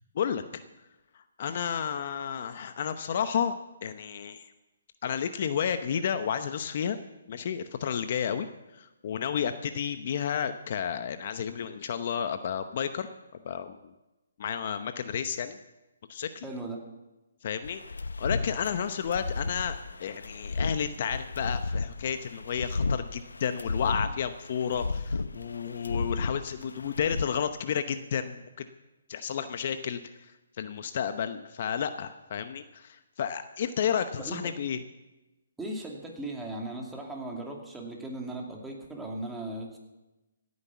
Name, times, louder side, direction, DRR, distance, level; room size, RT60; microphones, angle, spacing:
voice 1, 0.1-0.6 1.1-4.5 5.0-7.0 7.3-8.5 8.7-13.1 13.4-13.9 14.4-15.6 16.1-16.5 17.4-17.8 18.2-28.4 29.1-30.3 30.6-34.8, left 8 dB, 50° left, 10 dB, 0.9 m, -31 dB
voice 2, 16.4-16.8 34.2-34.4 35.6-39.8, right 2 dB, 5° right, -1 dB, 2.4 m, -37 dB
sound 1, 17.6-27.2, left 3 dB, 90° left, 0.8 m, -33 dB
17.0 x 9.6 x 7.2 m, 1.1 s
hypercardioid pair, 150°, 0 cm